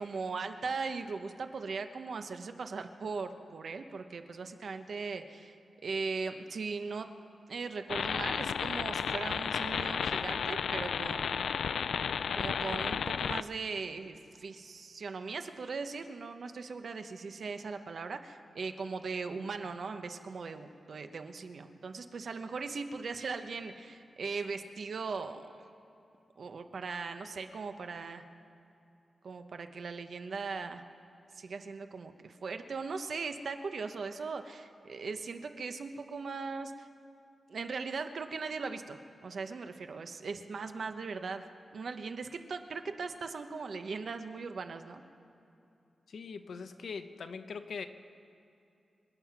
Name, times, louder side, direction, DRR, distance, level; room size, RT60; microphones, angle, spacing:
voice 1, 0.0-5.5 5.8-7.1 7.5-11.5 12.4-25.5 26.4-28.2 29.2-30.8 31.3-36.9 37.5-41.4 41.7-45.0, right 4 dB, 55° right, 7 dB, 0.9 m, -39 dB
sound 1, 7.9-13.4, left 7 dB, 90° left, 0.3 m, -33 dB
voice 2, 46.1-47.9, left 5 dB, 65° left, 9 dB, 0.8 m, -41 dB
26.5 x 9.3 x 5.9 m, 2.8 s
wide cardioid pair, 170°, 0 cm